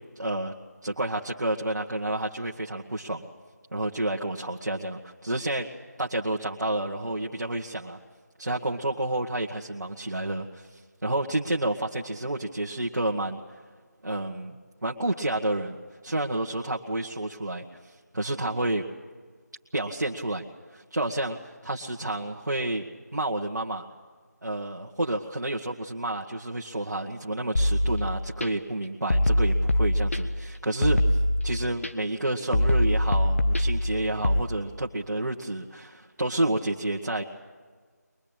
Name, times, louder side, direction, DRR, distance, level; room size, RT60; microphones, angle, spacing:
voice 1, 0.1-0.5 0.8-3.3 3.7-5.7 6.0-8.0 8.4-13.4 14.0-15.8 16.0-17.6 18.1-18.8 19.7-20.4 20.7-23.8 24.4-31.0 31.4-37.2, right 1 dB, 80° right, -2 dB, 1.5 m, -30 dB
sound 1, 27.6-28.5 29.1-30.5 30.8-31.9 32.5-34.4, left 1 dB, 50° left, 1.4 m, -23 dB
22.5 x 22.0 x 8.9 m, 1.5 s
figure-of-eight pair, 175°, 9 cm